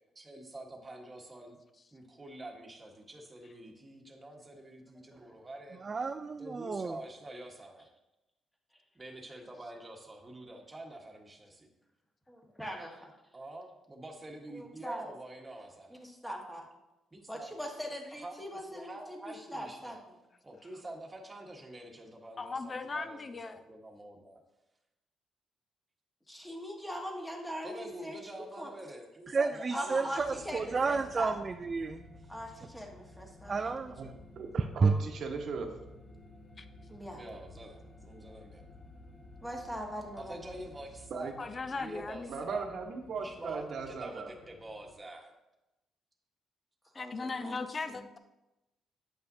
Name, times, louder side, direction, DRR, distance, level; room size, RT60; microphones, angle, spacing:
voice 1, 0.1-1.6 1.9-5.8 6.4-7.9 8.9-11.7 13.3-16.0 17.1-17.5 18.2-19.9 20.4-24.4 27.6-30.4 37.1-38.6 40.2-41.4 41.7-42.7 43.2-45.3, right 1 dB, 20° right, 1 dB, 1.2 m, -46 dB
voice 2, 5.8-7.0 29.3-32.0 33.5-33.9 34.8-34.9, right 4 dB, 35° right, 8 dB, 0.3 m, -31 dB
voice 3, 12.3-13.1 14.5-15.0 16.0-16.7 17.3-20.0 26.3-28.7 29.7-31.3 32.3-33.9 36.9-37.2 39.4-40.6 46.9-47.6 47.9-48.0, equal, 5° left, 1 dB, 1.3 m, -41 dB
voice 4, 22.4-23.6 36.6-36.7 41.4-42.3 46.9-48.2, left 4 dB, 35° left, 10 dB, 0.5 m, -38 dB
sound 1, 30.2-44.9, left 1 dB, 50° left, 1.2 m, -54 dB
voice 5, 34.4-35.7 41.1-41.3 42.3-44.3, right 5 dB, 65° right, 4 dB, 1.0 m, -38 dB
8.5 x 5.6 x 2.7 m, 0.96 s
cardioid pair, 90°, 0 cm